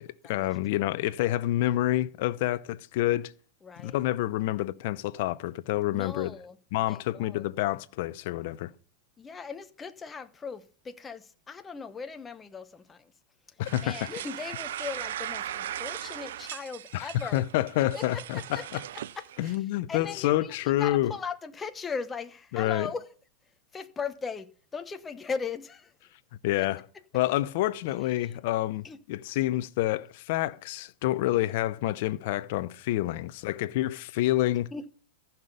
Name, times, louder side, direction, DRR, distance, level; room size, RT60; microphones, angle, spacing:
voice 1, 0.0-3.3 3.8-6.3 6.7-8.7 13.6-14.1 16.9-18.8 19.4-21.1 22.5-22.9 26.4-26.9 27.1-34.7, left 15 dB, 60° left, 0.7 m, -28 dB
voice 2, 3.6-4.0 5.9-6.6 6.9-7.5 9.2-13.1 13.8-17.4 17.9-18.7 19.2-19.6 19.9-23.1 23.7-25.9 26.6-26.7 28.2-28.3 28.8-29.0 34.7-34.9, left 5 dB, 15° left, 1.0 m, -38 dB
sound 1, 13.6-19.6, right 11 dB, 75° right, 0.5 m, -38 dB
14.5 x 6.0 x 6.8 m
hypercardioid pair, 120°, 0 cm